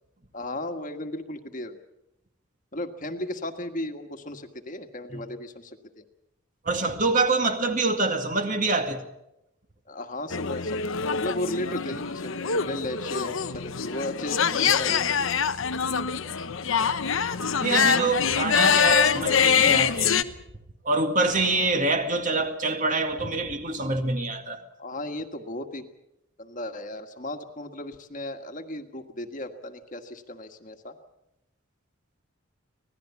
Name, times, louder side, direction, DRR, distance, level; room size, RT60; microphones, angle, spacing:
voice 1, 0.3-1.8 2.7-6.0 9.9-15.3 21.3-21.7 24.8-25.9 26.4-31.0, left 1 dB, 40° left, 1.6 m, -35 dB
voice 2, 6.6-9.0 17.6-20.1 20.8-24.6, right 3 dB, 40° right, 2.0 m, -25 dB
sound 1, 10.3-20.2, left 7 dB, 75° left, 1.0 m, -24 dB
25.5 x 18.0 x 7.1 m
head